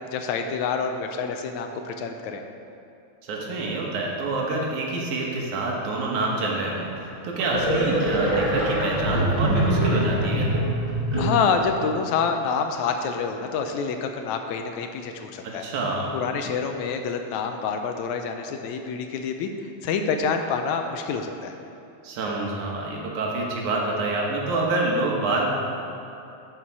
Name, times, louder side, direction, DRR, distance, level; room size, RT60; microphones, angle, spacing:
voice 1, 0.1-2.4 11.2-15.6 16.1-19.5 19.8-21.5, left 5 dB, 80° left, 5 dB, 1.9 m, -27 dB
voice 2, 3.2-10.5 15.6-16.1 22.0-25.5, right 2 dB, 80° right, -2 dB, 2.7 m, -27 dB
sound 1, 7.4-11.6, right 1 dB, 15° right, 1.7 m, -23 dB
12.5 x 5.7 x 4.7 m, 2.7 s
omnidirectional pair, 3.4 m